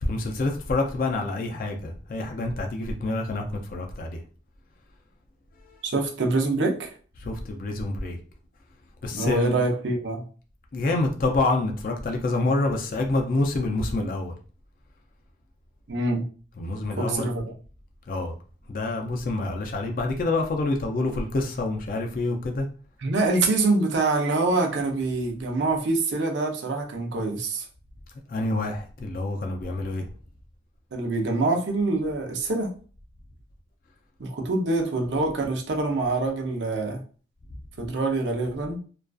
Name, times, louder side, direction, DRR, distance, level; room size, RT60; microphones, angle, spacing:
voice 1, 0.0-4.2 5.7-5.8 7.2-8.2 9.0-9.6 10.7-14.3 16.6-17.3 18.1-18.3 18.7-22.7 28.3-30.0, left 2 dB, 50° left, 0.3 m, -27 dB
voice 2, 5.8-6.9 9.1-10.2 15.9-16.2 17.0-17.4 23.0-27.7 30.9-32.7 34.2-37.0 37.8-38.8, right 2 dB, 85° right, 0.6 m, -25 dB
2.4 x 2.3 x 2.3 m
head